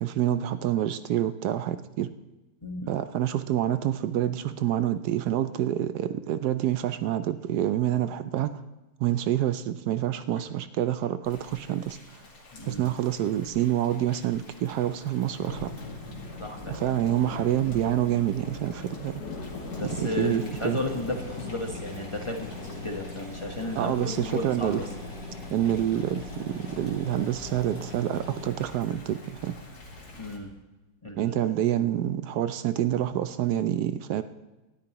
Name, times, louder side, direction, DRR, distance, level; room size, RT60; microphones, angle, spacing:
voice 1, 0.0-2.1 2.9-8.6 9.0-12.0 12.6-15.7 16.7-19.2 20.0-20.8 23.8-24.8 25.5-29.5 31.1-34.2, right 11 dB, 75° right, 11 dB, 1.1 m, -27 dB
Thunder / Rain, 11.2-30.4, left 2 dB, 65° left, 2.4 m, -42 dB
voice 2, 12.5-12.9 16.1-16.8 19.8-24.8 30.2-30.5 31.0-31.5, left 2 dB, 20° left, 1 dB, 1.0 m, -34 dB
sound 1, 19.4-28.5, left 2 dB, 40° right, 2.3 m, -42 dB
18.5 x 13.0 x 3.0 m, 1.1 s
omnidirectional pair, 1.8 m